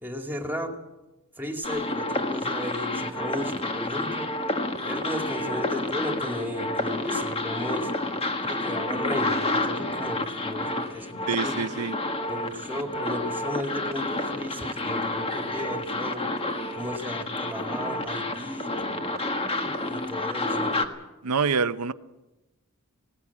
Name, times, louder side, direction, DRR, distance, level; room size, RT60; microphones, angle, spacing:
voice 1, 0.0-0.8 1.4-4.3 4.8-7.9 8.4-11.6 12.3-16.3 16.7-18.8 19.6-20.7, left 1 dB, 10° right, 2.4 m, -35 dB
sound 1, 1.6-20.9, left 2 dB, 25° left, 1.6 m, -29 dB
voice 2, 11.3-11.9 21.2-21.9, right 5 dB, 85° right, 0.8 m, -26 dB
19.0 x 18.0 x 8.6 m
head